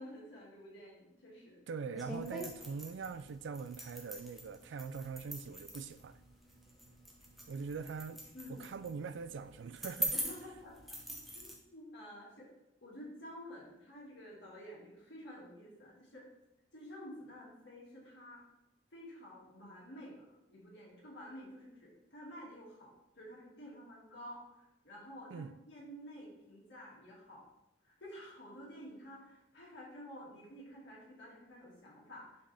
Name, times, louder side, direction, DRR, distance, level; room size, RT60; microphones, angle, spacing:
voice 1, 0.0-1.6 8.3-8.6 10.1-10.7 11.3-12.5 12.8-16.3 16.7-18.4 18.9-27.5 27.8-32.4, equal, 65° left, -5 dB, 2.2 m, -51 dB
voice 2, 1.7-6.2 7.5-8.2 8.5-10.1 25.3-25.6, right 5 dB, 70° right, 12 dB, 0.3 m, -42 dB
sound 1, 1.9-11.5, equal, ahead, 0.9 m, -43 dB
5.5 x 5.1 x 3.4 m, 0.89 s
head